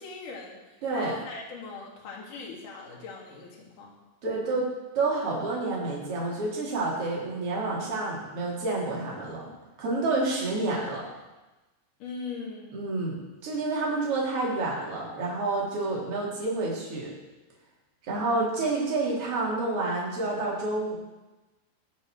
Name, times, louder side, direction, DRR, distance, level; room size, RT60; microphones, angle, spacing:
voice 1, 0.0-4.0 12.0-12.8, left 4 dB, 50° left, -2 dB, 3.8 m, -40 dB
voice 2, 0.8-1.1 4.2-4.7 5.0-9.5 9.8-11.1 12.7-13.2 13.4-17.1 18.1-21.0, right 2 dB, 35° right, -4 dB, 3.8 m, -29 dB
19.0 x 6.5 x 6.5 m, 1.1 s
omnidirectional pair, 5.3 m